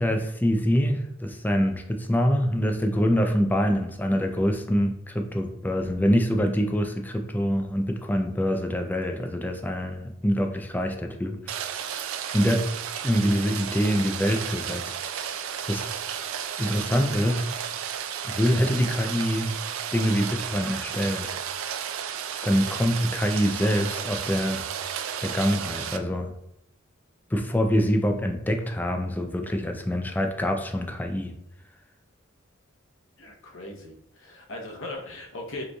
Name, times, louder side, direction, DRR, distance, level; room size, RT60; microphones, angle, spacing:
voice 1, 0.0-11.4 12.3-12.7 13.0-14.9 15.7-15.9 16.6-17.5 18.3-19.5 19.9-21.4 22.4-24.6 25.2-26.3 27.3-31.3, equal, 10° left, 4 dB, 0.4 m, -25 dB
Rain, 11.5-26.0, right 8 dB, 75° right, 0.4 m, -33 dB
voice 2, 33.2-35.7, left 2 dB, 70° left, 0 dB, 0.8 m, -38 dB
4.9 x 3.1 x 2.3 m, 0.78 s
head